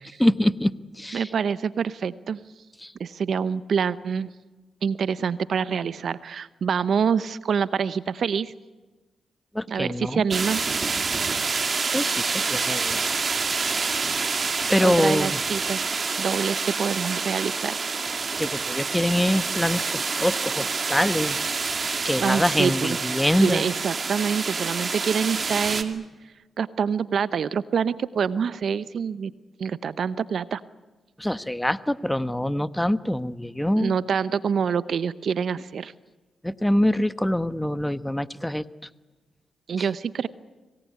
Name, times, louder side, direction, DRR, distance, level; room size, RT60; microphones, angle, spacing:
voice 1, 0.2-1.3 2.8-2.9 9.5-10.2 11.9-13.0 13.5-13.9 14.7-15.4 18.4-21.4 22.0-23.6 31.2-33.9 36.4-38.6, left 1 dB, 10° left, 14 dB, 1.1 m, -24 dB
voice 2, 1.1-2.4 3.0-4.3 4.8-8.5 9.7-10.6 14.8-15.8 16.2-17.8 22.2-26.0 26.6-29.3 29.6-30.6 33.7-35.9 39.7-40.3, right 6 dB, 70° right, 16 dB, 0.7 m, -26 dB
sound 1, 10.3-25.8, right 4 dB, 50° right, 2.1 m, -27 dB
25.5 x 18.5 x 9.5 m, 1.3 s
supercardioid pair, 45°, 0 cm